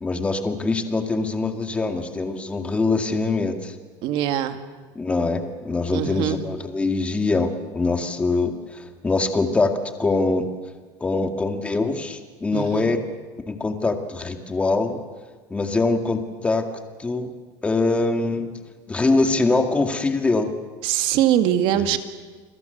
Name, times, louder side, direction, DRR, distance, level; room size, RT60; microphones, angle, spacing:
voice 1, 0.0-3.8 5.0-9.7 10.0-10.5 11.0-13.0 13.5-15.0 15.5-16.6 17.0-17.3 17.6-18.5 18.9-20.5 21.7-21.9, left 3 dB, 10° left, 5 dB, 2.1 m, -23 dB
voice 2, 4.0-4.6 5.9-6.4 12.5-12.8 20.8-22.0, right 11 dB, 55° right, 8 dB, 2.1 m, -22 dB
29.5 x 22.5 x 8.1 m, 1.4 s
cardioid pair, 155°, 10 cm